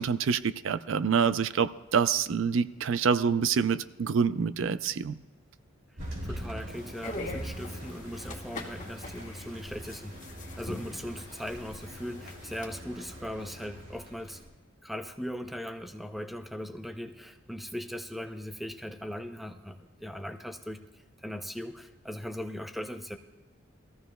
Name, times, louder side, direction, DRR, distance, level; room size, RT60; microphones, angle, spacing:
voice 1, 0.0-5.1, right 6 dB, 65° right, 14 dB, 0.4 m, -26 dB
Thunder, 6.0-14.5, equal, 80° right, 3.4 m, -42 dB
voice 2, 6.2-10.2 10.5-14.4 14.8-20.8 21.2-23.2, equal, ahead, 6 dB, 0.5 m, -39 dB
sound 1, 6.7-12.7, left 2 dB, 35° left, 1.8 m, -43 dB
21.0 x 14.5 x 2.2 m, 1.2 s
head